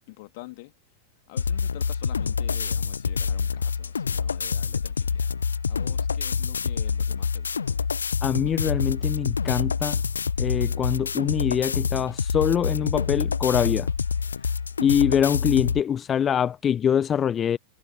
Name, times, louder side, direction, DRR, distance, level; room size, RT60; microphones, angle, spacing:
voice 1, 0.1-0.7 1.3-7.7, left 22 dB, 50° left, 2.8 m, -46 dB
sound 1, 1.4-15.8, left 6 dB, 75° left, 0.8 m, -27 dB
voice 2, 8.2-10.0 10.4-13.9 14.8-17.6, left 8 dB, 25° left, 0.8 m, -24 dB
figure-of-eight pair, 90°, 0 cm